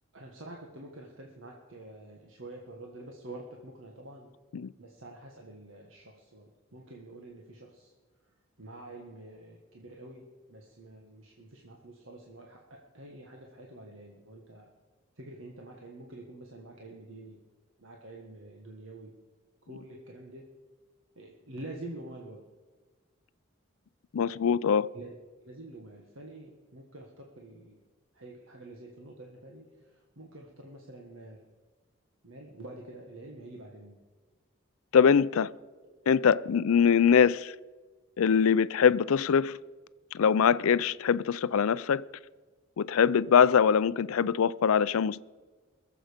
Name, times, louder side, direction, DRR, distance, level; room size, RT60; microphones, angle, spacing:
voice 1, 0.1-4.3 4.8-7.9 8.6-14.7 15.2-17.4 17.8-19.1 19.7-20.5 21.1-22.4 24.9-25.2 25.4-27.8 28.1-31.5 32.2-34.0 35.8-35.9, right 2 dB, 70° right, 1.6 m, -47 dB
voice 2, 24.1-24.9 34.9-35.5 36.1-37.5 38.2-39.6 40.1-42.0 42.8-45.2, left 7 dB, 85° left, 0.4 m, -23 dB
22.5 x 7.6 x 5.1 m
head